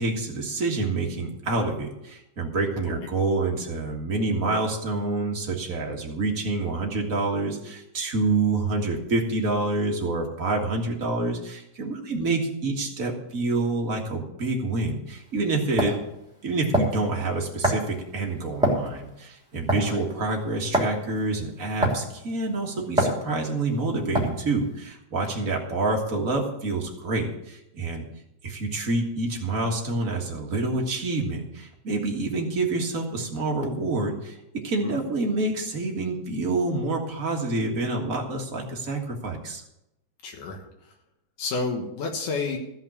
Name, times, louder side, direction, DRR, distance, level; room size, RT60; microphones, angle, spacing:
voice 1, 0.0-16.0 16.4-28.0 28.4-39.6, right 2 dB, 35° right, 0 dB, 1.4 m, -27 dB
sound 1, 15.1-15.2 15.8-16.0 16.7-17.0 17.6-17.9 18.6-18.9 19.7-20.0 20.7-20.9 21.8-22.1 23.0-23.2 24.1-24.4, right 1 dB, ahead, 2.8 m, -23 dB
voice 2, 40.2-40.7 41.4-42.6, left 4 dB, 75° left, 2 dB, 2.8 m, -30 dB
14.5 x 5.7 x 8.6 m, 0.85 s
omnidirectional pair, 3.7 m